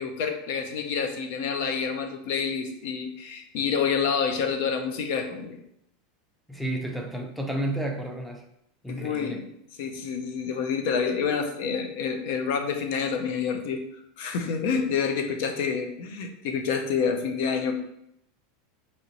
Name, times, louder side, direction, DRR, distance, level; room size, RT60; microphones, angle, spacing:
voice 1, 0.0-5.6 8.9-9.5 9.8-13.8 14.2-17.8, left 6 dB, 65° left, 6 dB, 0.6 m, -28 dB
voice 2, 6.5-8.4 8.8-9.4, right 1 dB, ahead, 2 dB, 0.5 m, -31 dB
4.1 x 2.9 x 2.9 m, 0.76 s
supercardioid pair, 140°, 0 cm